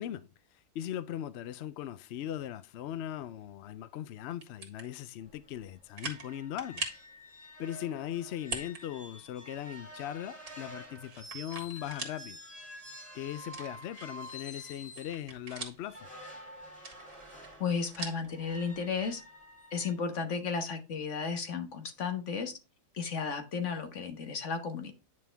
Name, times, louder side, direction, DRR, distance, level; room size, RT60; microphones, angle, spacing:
voice 1, 0.0-6.9 7.6-12.4 13.1-16.1, left 11 dB, 75° left, 0.6 m, -39 dB
sound 1, 4.3-4.9 5.4-5.5 6.0-6.3 6.6-7.1 8.4-8.8 9.2-9.3 10.5-12.2 12.6-12.7 13.4-14.3 14.7-16.0 16.7-18.3, right 4 dB, 65° right, 2.2 m, -41 dB
sound 2, 5.2-5.3 5.6-5.7 6.0-15.2 15.8-19.9, left 1 dB, 5° left, 3.2 m, -49 dB
voice 2, 17.6-19.2 19.7-22.6 22.9-24.9, left 5 dB, 50° left, 1.5 m, -34 dB
9.6 x 5.3 x 3.4 m
omnidirectional pair, 1.7 m